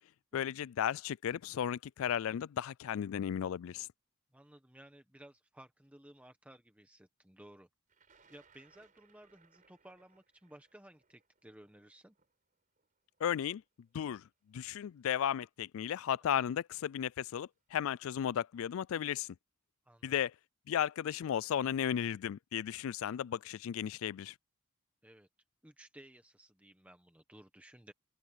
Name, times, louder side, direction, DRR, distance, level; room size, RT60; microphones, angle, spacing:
voice 1, 0.3-3.9 13.2-13.6 13.9-14.2 14.5-19.3 20.0-20.3 20.7-24.3, left 9 dB, 70° left, 0.3 m, -34 dB
voice 2, 4.3-7.7 8.3-12.1 16.2-16.5 19.8-20.2 25.0-25.3 25.6-27.9, right 1 dB, 5° right, 1.1 m, -57 dB
Thunder, 7.9-13.9 14.8-14.9 16.1-16.3 16.6-17.1, right 5 dB, 35° right, 4.9 m, -69 dB
open air
head